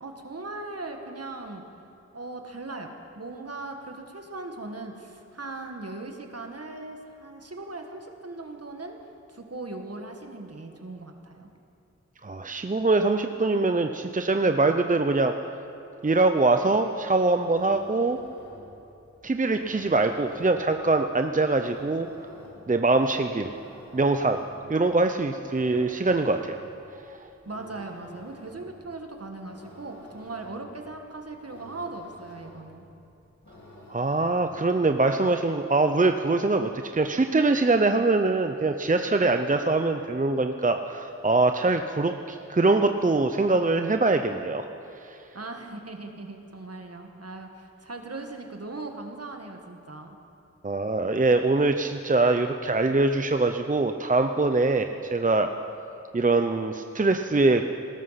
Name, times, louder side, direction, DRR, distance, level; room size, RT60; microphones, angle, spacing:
voice 1, 0.0-1.6 2.1-9.0 9.3-11.5 27.4-32.9 45.3-50.2, right 2 dB, 55° right, 4 dB, 1.6 m, -39 dB
voice 2, 12.2-15.4 16.0-18.2 19.2-22.1 22.7-23.5 23.9-24.4 24.7-26.6 33.9-44.7 45.0-45.2 50.6-55.5 56.1-57.6, right 3 dB, 30° right, 6 dB, 0.6 m, -23 dB
sound 1, 17.4-34.8, left 1 dB, 75° left, 2.9 m, -50 dB
18.5 x 13.0 x 5.8 m, 2.8 s
wide cardioid pair, 60°, 29 cm